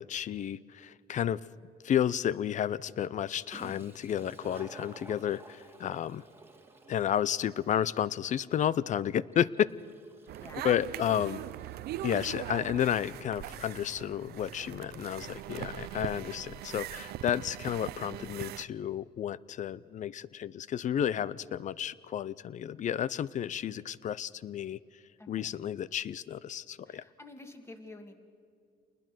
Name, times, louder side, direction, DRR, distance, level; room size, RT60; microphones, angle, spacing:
voice 1, 0.0-1.4 1.8-6.2 6.9-9.7 10.6-11.4 12.0-24.8 25.3-27.0, left 10 dB, 45° left, 20 dB, 0.6 m, -31 dB
Toilet flush, 3.5-12.9, right 2 dB, 15° right, 1.8 m, -53 dB
sound 1, 10.3-18.6, right 14 dB, 70° right, 0.6 m, -41 dB
voice 2, 25.2-25.5 26.9-28.2, left 2 dB, 15° left, 5 dB, 2.3 m, -49 dB
27.5 x 20.5 x 6.1 m, 2.3 s
cardioid pair, 110°, 17 cm